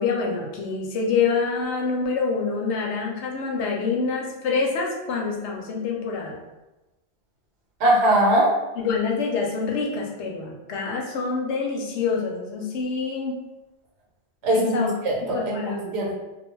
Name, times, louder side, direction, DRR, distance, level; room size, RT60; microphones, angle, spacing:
voice 1, 0.0-6.4 8.8-13.4 14.5-14.9 15.3-15.9, left 4 dB, 80° left, 0 dB, 0.9 m, -26 dB
voice 2, 7.8-8.5 14.4-16.1, right 1 dB, 70° right, -2 dB, 0.9 m, -21 dB
2.2 x 2.2 x 3.1 m, 1.0 s
omnidirectional pair, 1.2 m